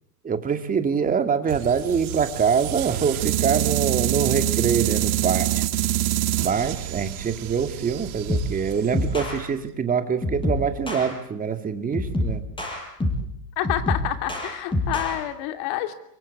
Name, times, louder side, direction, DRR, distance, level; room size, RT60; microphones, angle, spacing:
voice 1, 0.2-5.6 6.4-12.4, right 6 dB, 15° right, 8 dB, 2.3 m, -24 dB
sound 1, 1.5-9.6, right 14 dB, 65° right, 1.9 m, -26 dB
sound 2, 8.3-8.6 8.9-9.4 10.2-11.1 11.9-13.3 13.6-15.2, left 1 dB, 10° left, 7.4 m, -26 dB
voice 2, 13.6-15.9, left 13 dB, 50° left, 8 dB, 3.0 m, -28 dB
26.0 x 23.5 x 8.4 m, 0.72 s
hypercardioid pair, 115°, 47 cm